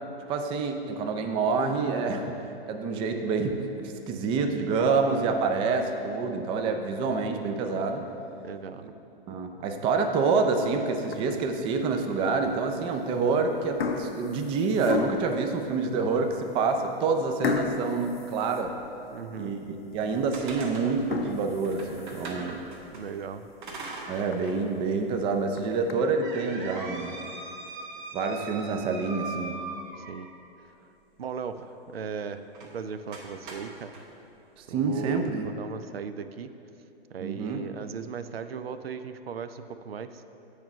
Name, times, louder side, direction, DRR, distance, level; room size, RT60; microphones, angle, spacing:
voice 1, 0.3-2.4 2.7-3.7 4.1-8.1 9.3-18.8 19.4-22.6 24.1-27.2 28.1-29.6 34.6-35.5 37.2-37.6, right 4 dB, 20° right, 5 dB, 0.4 m, -27 dB
voice 2, 8.4-9.0 19.1-19.6 22.9-23.5 30.1-30.3 31.2-32.4 32.7-34.0 34.7-36.5 37.1-40.2, right 6 dB, 75° right, 10 dB, 0.5 m, -37 dB
sound 1, 11.0-11.5 12.1-12.2 13.1-13.3 13.6-15.4 16.1-16.2 16.5-16.6 17.4-19.2 19.6-19.7 20.2-20.3 20.9-22.5 23.0-23.1 23.5-23.6 23.9-24.0 24.3-24.4 25.3-25.9, left 5 dB, 80° left, 0.7 m, -33 dB
Open Door slowly squeak, 19.9-23.0 23.6-24.6 25.0-25.1 25.7-30.4 32.5-32.7 33.1-34.0, right 3 dB, 55° right, 1.4 m, -41 dB
8.5 x 4.7 x 5.4 m, 2.8 s
figure-of-eight pair, 110°, 30 cm